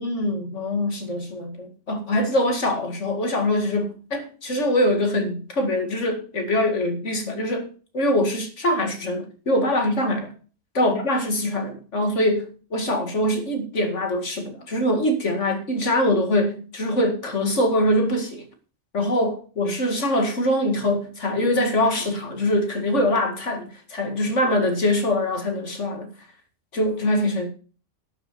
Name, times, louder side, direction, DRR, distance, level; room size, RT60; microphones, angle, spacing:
voice 1, 0.0-7.7 7.9-10.3 10.7-18.5 18.9-26.1 26.7-27.5, left 1 dB, 75° left, 2.5 m, -23 dB
12.0 x 6.8 x 6.9 m
omnidirectional pair, 1.3 m